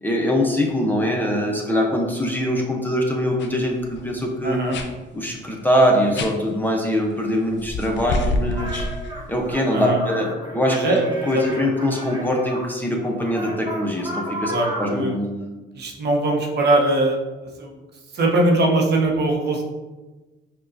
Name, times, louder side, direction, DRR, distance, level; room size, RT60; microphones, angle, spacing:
voice 1, 0.0-4.6 5.1-8.9 9.3-14.5 14.8-15.2, equal, 10° left, -1 dB, 0.6 m, -22 dB
sound 1, 3.4-3.5 3.8-4.1 4.7-4.9 6.1-6.3 7.6-9.5, left 2 dB, 65° left, 0.5 m, -27 dB
voice 2, 4.4-4.8 9.7-10.0 10.7-11.7 14.4-15.1 15.7-17.2 17.6-17.8 18.1-19.6, right 2 dB, 60° right, 1 dB, 0.8 m, -21 dB
sound 2, 8.5-12.7 13.2-15.0, right 1 dB, 20° right, 0.8 m, -34 dB
5.4 x 2.3 x 2.5 m, 1.2 s
cardioid pair, 90°, 20 cm